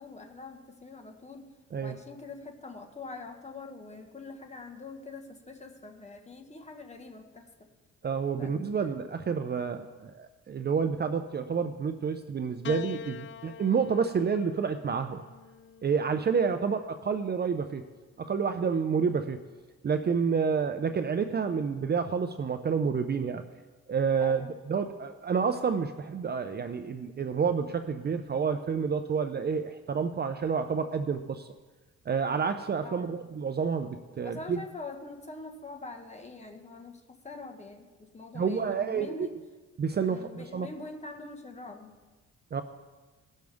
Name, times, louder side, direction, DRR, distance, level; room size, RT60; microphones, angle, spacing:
voice 1, 0.0-1.5 1.8-7.7 8.4-9.0 16.3-16.5 24.2-24.5 32.8-33.1 34.2-39.3 40.0-42.0, left 3 dB, 20° left, 4 dB, 1.5 m, -44 dB
voice 2, 8.0-15.2 15.8-17.8 18.2-19.5 19.8-23.4 23.9-24.4 24.7-31.5 32.1-34.6 38.3-39.3 39.8-40.7 42.5-42.6, right 6 dB, 35° right, 9 dB, 0.6 m, -29 dB
Piano, 12.6-17.1 18.2-18.9, left 6 dB, 40° left, 0.5 m, -45 dB
18.5 x 6.4 x 3.6 m, 1.3 s
cardioid pair, 90°, 30 cm